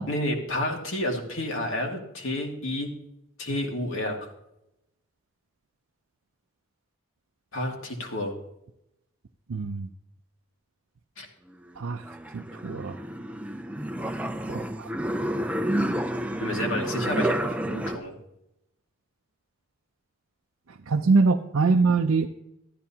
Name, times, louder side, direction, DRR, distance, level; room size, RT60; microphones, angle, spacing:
voice 1, 0.1-2.9 3.4-4.3 7.5-8.3 11.2-11.3 16.4-18.1, left 1 dB, 70° left, 1 dB, 2.1 m, -30 dB
voice 2, 9.5-9.9 11.8-12.0 12.3-12.9 14.5-14.9 20.9-22.3, right 4 dB, 80° right, 3 dB, 0.5 m, -23 dB
sound 1, 11.5-18.0, right 1 dB, 5° right, 0.4 m, -30 dB
13.5 x 12.5 x 2.9 m, 0.83 s
head